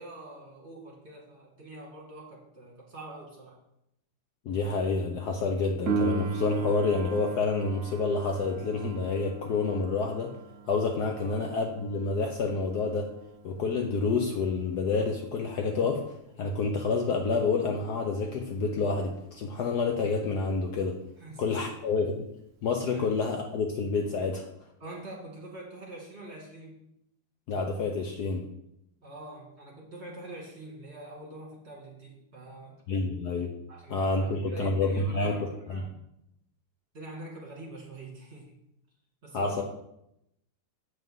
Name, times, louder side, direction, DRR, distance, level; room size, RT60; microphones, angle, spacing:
voice 1, 0.0-3.6 11.2-11.4 21.2-22.0 22.9-23.0 24.8-26.8 29.0-32.8 33.7-36.0 36.9-38.5 39.2-39.6, right 2 dB, 35° right, -2 dB, 2.2 m, -45 dB
voice 2, 4.5-10.3 10.7-13.1 13.4-16.0 16.4-21.0 21.4-22.3 22.6-24.5 27.5-28.5 32.9-33.5 33.9-35.9 39.3-39.6, left 4 dB, 65° left, 3 dB, 1.2 m, -28 dB
Piano, 5.9-16.3 23.8-23.9, right 4 dB, 75° right, 0.7 m, -37 dB
7.9 x 7.5 x 3.6 m, 0.80 s
omnidirectional pair, 2.2 m